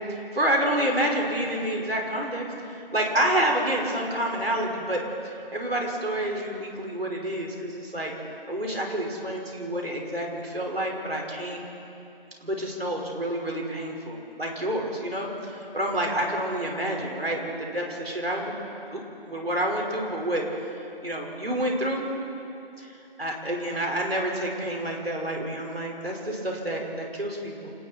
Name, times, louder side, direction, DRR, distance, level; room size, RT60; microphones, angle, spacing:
voice 1, 0.1-2.5 2.9-5.0 5.5-8.1 8.5-11.6 12.4-18.6 18.9-20.4 21.0-22.1 22.8-22.9 23.2-27.7, right 1 dB, 80° right, 0 dB, 5.6 m, -28 dB
29.5 x 19.5 x 4.6 m, 2.8 s
figure-of-eight pair, 175°, 30 cm